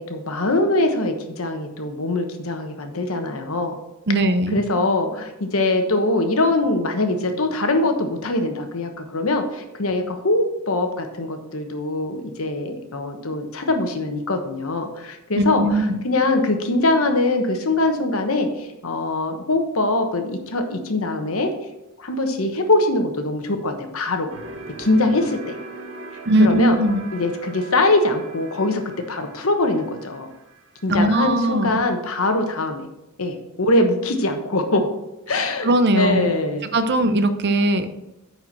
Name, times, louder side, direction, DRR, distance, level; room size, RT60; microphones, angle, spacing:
voice 1, 0.0-3.8 4.5-21.5 22.0-24.3 24.8-25.6 26.4-26.8 27.1-28.8 29.1-30.3 30.8-32.8 33.2-34.9 35.3-36.7, left 2 dB, 75° left, 6 dB, 1.2 m, -22 dB
voice 2, 4.1-4.6 15.4-16.0 26.3-27.1 30.9-31.8 35.6-36.3 36.7-37.9, right 1 dB, 55° right, 10 dB, 0.7 m, -19 dB
sound 1, 24.3-31.3, right 2 dB, 70° right, 1.4 m, -40 dB
9.5 x 4.5 x 6.1 m, 0.97 s
head